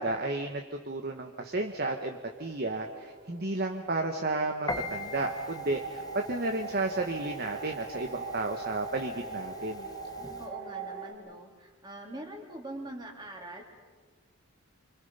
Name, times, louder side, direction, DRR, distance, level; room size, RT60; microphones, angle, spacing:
voice 1, 0.0-9.9, right 2 dB, 45° right, 4 dB, 1.3 m, -32 dB
sound 1, 1.3-11.1, right 4 dB, 85° right, 4.0 m, -42 dB
Piano, 4.7-10.5, left 2 dB, 15° left, 0.9 m, -43 dB
voice 2, 10.4-13.6, right 1 dB, 20° right, 1 dB, 3.4 m, -43 dB
29.0 x 25.5 x 5.6 m, 1.4 s
head